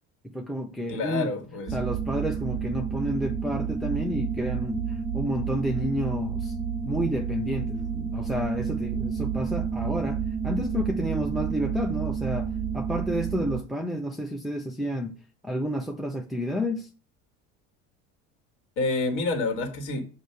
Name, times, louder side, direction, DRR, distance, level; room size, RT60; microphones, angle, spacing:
voice 1, 0.2-1.3 1.7-6.6 6.8-15.2 15.4-16.9, equal, ahead, 0.6 m, -30 dB
voice 2, 0.9-1.8 18.8-20.0, left 3 dB, 65° left, 1.9 m, -28 dB
sound 1, 1.7-13.6, right 7 dB, 20° right, 0.9 m, -30 dB
6.3 x 2.8 x 5.7 m
supercardioid pair, 110°, 33 cm